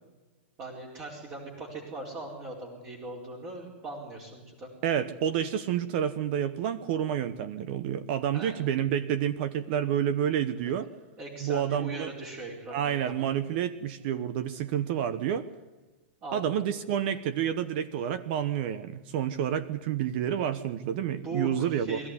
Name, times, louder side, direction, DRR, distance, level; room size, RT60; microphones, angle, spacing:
voice 1, 0.6-4.7 8.3-8.6 10.6-10.7 11.2-13.3 16.2-16.5 21.2-22.1, right 2 dB, 30° right, -2 dB, 4.4 m, -40 dB
voice 2, 4.8-10.9 11.4-12.1 12.7-15.5 16.3-22.0, right 9 dB, 50° right, 14 dB, 1.1 m, -29 dB
23.5 x 14.5 x 9.7 m, 1.2 s
hypercardioid pair, 140°, 7 cm